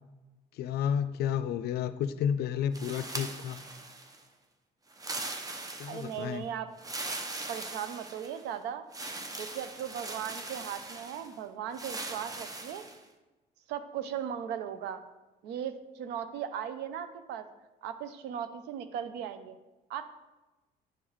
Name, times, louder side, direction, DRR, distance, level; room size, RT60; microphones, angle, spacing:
voice 1, 0.5-3.6 5.8-6.5, left 8 dB, 70° left, 12 dB, 0.4 m, -31 dB
sound 1, 2.7-4.2 4.9-6.2 6.8-8.5 8.9-11.3 11.7-13.0, right 2 dB, 20° right, 0.6 m, -40 dB
voice 2, 5.9-6.7 7.5-8.8 9.4-12.9 13.7-15.0 15.4-17.5 17.8-19.6 19.9-20.1, right 9 dB, 85° right, 11 dB, 0.5 m, -37 dB
10.0 x 3.9 x 3.1 m, 1.1 s
cardioid pair, 110°, 17 cm